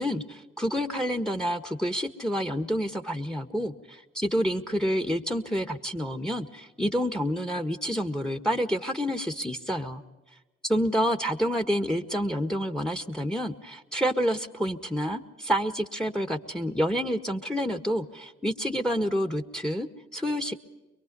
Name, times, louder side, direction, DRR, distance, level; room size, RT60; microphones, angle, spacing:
voice 1, 0.0-10.0 10.6-20.5, equal, ahead, 8 dB, 1.7 m, -28 dB
23.5 x 23.0 x 5.5 m, 1.1 s
supercardioid pair, 40°, 30 cm